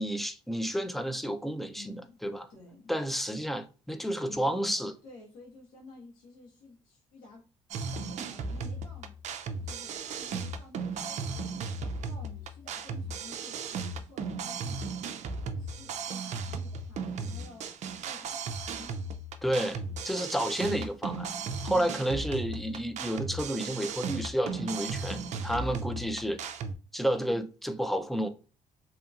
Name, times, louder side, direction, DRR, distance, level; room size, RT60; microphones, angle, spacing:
voice 1, 0.0-2.0 2.2-2.5 2.9-4.9 19.4-21.3 21.6-26.4 26.9-28.3, equal, ahead, 0.4 m, -31 dB
voice 2, 1.7-2.2 2.5-2.9 4.2-7.4 7.7-9.2 9.6-11.7 12.0-15.2 15.6-17.7 18.0-19.0 21.7-21.9 27.3-27.4, left 3 dB, 80° left, 1.3 m, -52 dB
sound 1, 7.7-26.8, right 4 dB, 60° right, 0.4 m, -36 dB
2.8 x 2.6 x 2.4 m
cardioid pair, 80°, 13 cm